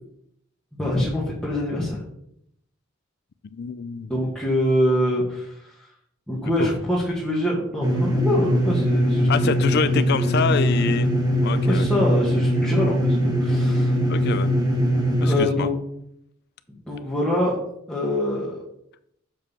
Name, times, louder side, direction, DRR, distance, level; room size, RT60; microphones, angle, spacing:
voice 1, 0.7-2.0 4.1-5.6 6.3-9.7 11.6-13.9 15.2-15.7 16.9-17.5 17.9-18.6, left 1 dB, 5° left, -7 dB, 1.6 m, -24 dB
voice 2, 3.4-4.1 6.6-6.7 9.3-11.1 11.4-11.9 14.1-14.5 15.2-15.7, left 5 dB, 55° left, 13 dB, 0.4 m, -26 dB
sound 1, 7.8-15.4, equal, 20° right, 1.6 m, -21 dB
7.2 x 5.3 x 5.5 m, 0.76 s
head